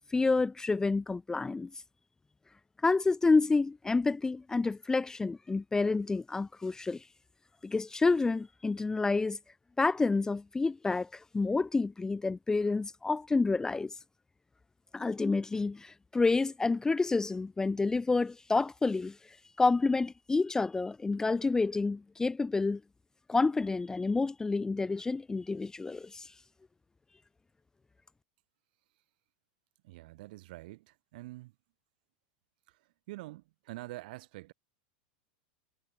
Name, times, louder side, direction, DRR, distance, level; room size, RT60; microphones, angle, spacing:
voice 1, 0.1-1.7 2.8-7.0 7.6-9.4 9.8-13.9 14.9-19.2 19.6-22.8 23.3-26.3, left 3 dB, 10° left, 0.8 m, -29 dB
voice 2, 29.8-31.6 32.7-34.5, right 19 dB, 65° right, 3.8 m, -46 dB
hypercardioid pair, 110°, 5 cm